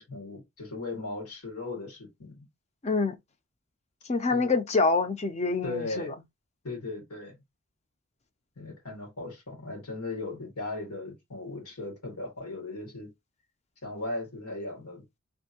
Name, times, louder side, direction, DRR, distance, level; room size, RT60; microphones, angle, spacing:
voice 1, 0.0-2.5 4.3-4.5 5.6-6.1 6.6-7.4 8.6-13.1 13.8-15.0, left 2 dB, 90° left, 1.9 m, -37 dB
voice 2, 2.8-3.2 4.1-6.1, left 3 dB, 30° left, 0.4 m, -26 dB
3.5 x 2.6 x 2.8 m
head